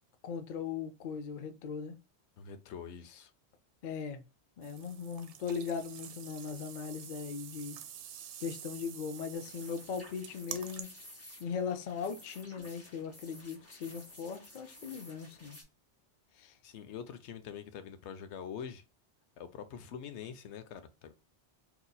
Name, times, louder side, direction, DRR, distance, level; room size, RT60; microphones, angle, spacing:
voice 1, 0.2-2.0 3.8-4.2 4.6-7.8 8.4-10.9 11.4-15.6 16.4-16.5, left 6 dB, 55° left, 0.6 m, -39 dB
voice 2, 2.4-3.3 16.6-18.8 19.4-21.1, left 7 dB, 80° left, 0.9 m, -45 dB
sound 1, 4.6-10.8, right 9 dB, 80° right, 0.9 m, -48 dB
sound 2, 9.3-15.6, equal, 15° left, 1.0 m, -54 dB
3.9 x 2.9 x 2.2 m
omnidirectional pair, 1.2 m